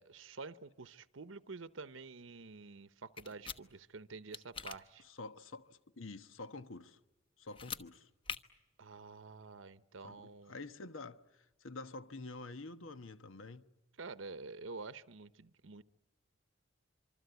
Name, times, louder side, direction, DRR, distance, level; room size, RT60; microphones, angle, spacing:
voice 1, 0.0-5.0 8.8-10.5 14.0-15.8, right 4 dB, 75° right, 0.8 m, -49 dB
sound 1, 3.2-3.6 4.3-4.8 7.5-7.8 8.2-8.4, left 6 dB, 25° left, 1.1 m, -42 dB
voice 2, 5.0-7.0 7.4-8.1 10.0-13.7, left 3 dB, 85° left, 1.2 m, -48 dB
26.0 x 25.0 x 8.1 m
head